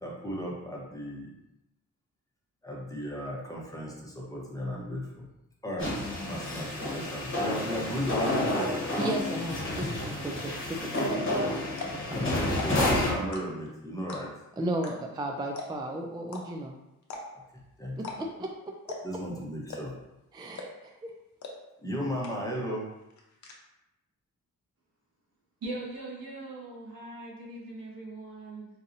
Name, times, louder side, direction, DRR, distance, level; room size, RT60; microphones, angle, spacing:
voice 1, 0.0-1.3 2.6-5.3 5.6-5.9 6.2-8.7 12.2-14.3 17.8-18.0 19.0-19.9 21.8-22.9, equal, 10° left, -3 dB, 0.9 m, -35 dB
sound 1, 5.8-13.2, left 1 dB, 35° left, 1.1 m, -30 dB
voice 2, 9.0-11.6 11.9-12.3 14.6-16.7 18.0-19.0 20.3-21.1, right 1 dB, 15° right, 2 dB, 0.3 m, -35 dB
sound 2, 10.9-11.2 11.7-12.1 12.4-12.9 13.3-13.7 14.1-14.4 14.8-14.9 15.2-15.3 15.5-15.9 16.3-16.4 17.0-17.5 18.0-18.2 18.4-18.5 18.9-19.2 19.7-20.1 20.6-20.9 21.4-21.5 21.8-21.9 22.2-22.7 22.9-23.5, left 4 dB, 55° left, 0.8 m, -39 dB
voice 3, 25.6-28.7, right 2 dB, 85° right, -4 dB, 1.2 m, -40 dB
4.0 x 2.7 x 2.6 m, 0.94 s
cardioid pair, 75°, 34 cm